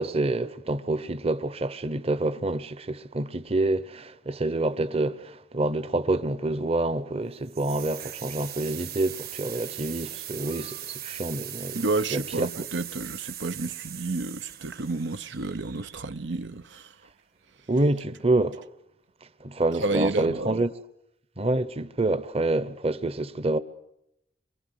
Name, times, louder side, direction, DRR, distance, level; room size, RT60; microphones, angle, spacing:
voice 1, 0.0-11.8 12.1-12.5 17.7-18.6 19.4-20.7 21.4-23.6, right 2 dB, 35° right, 1.0 m, -27 dB
sound 1, 7.5-16.3, right 12 dB, 55° right, 2.1 m, -40 dB
voice 2, 11.7-17.0 19.8-20.6, right 2 dB, 85° right, 0.9 m, -30 dB
26.0 x 24.0 x 8.0 m
head